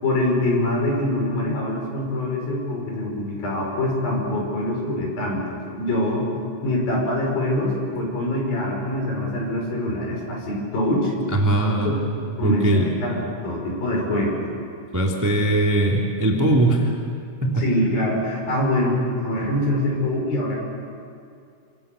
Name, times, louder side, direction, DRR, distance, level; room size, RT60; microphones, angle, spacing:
voice 1, 0.0-6.3 6.6-11.1 11.8-11.9 12.4-14.4 17.6-20.6, left 1 dB, 60° left, -1 dB, 7.4 m, -24 dB
voice 2, 11.4-12.0 12.4-12.8 14.9-16.9 17.4-17.7, right 1 dB, 5° right, -1 dB, 2.0 m, -20 dB
27.5 x 26.5 x 7.0 m, 2.4 s
omnidirectional pair, 4.6 m